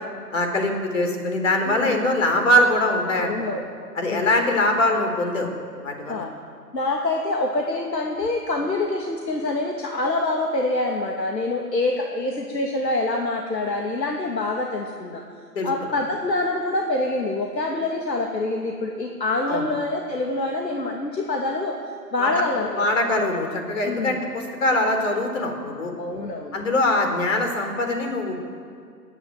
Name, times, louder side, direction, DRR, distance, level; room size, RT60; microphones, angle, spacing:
voice 1, 0.3-3.3 3.9-5.5 5.8-6.2 15.6-15.9 19.5-19.6 22.2-22.3 22.7-25.9 26.5-28.4, left 1 dB, 50° left, 4 dB, 4.2 m, -22 dB
voice 2, 1.7-2.0 3.1-3.6 4.1-4.4 6.1-6.3 6.7-15.2 15.6-21.8 22.1-23.0 23.8-24.2 26.0-26.6, left 2 dB, 85° left, 1 dB, 2.6 m, -26 dB
26.5 x 11.0 x 9.3 m, 2.2 s
hypercardioid pair, 160°, 49 cm